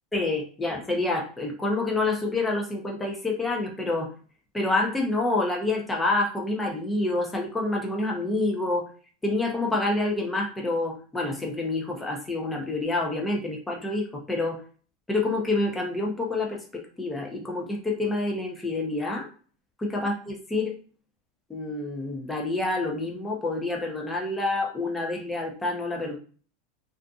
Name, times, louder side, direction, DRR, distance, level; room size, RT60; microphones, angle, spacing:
voice 1, 0.1-4.1 4.5-8.8 9.2-14.6 15.1-16.6 17.0-19.3 19.8-20.7 21.5-26.2, left 2 dB, 10° left, 0 dB, 0.7 m, -27 dB
2.6 x 2.4 x 2.3 m, 0.41 s
supercardioid pair, 135°, 0 cm